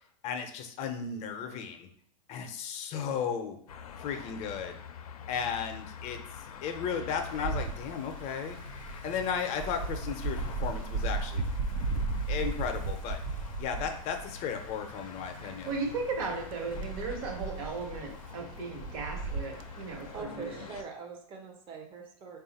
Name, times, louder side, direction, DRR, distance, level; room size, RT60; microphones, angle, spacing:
voice 1, 0.2-1.9 2.3-3.6 4.0-4.8 5.3-6.2 6.6-8.6 9.0-11.5 12.3-13.2 13.6-15.7, left 7 dB, 40° left, 6 dB, 0.5 m, -35 dB
sound 1, 3.7-20.8, left 7 dB, 90° left, 0.4 m, -46 dB
Wind, 7.1-20.2, right 3 dB, 65° right, 0.5 m, -36 dB
voice 2, 15.4-20.7, right 4 dB, 50° right, 1 dB, 1.2 m, -36 dB
voice 3, 20.1-22.4, right 4 dB, 30° right, 2 dB, 0.7 m, -43 dB
3.5 x 2.4 x 4.0 m, 0.63 s
hypercardioid pair, 125°, 18 cm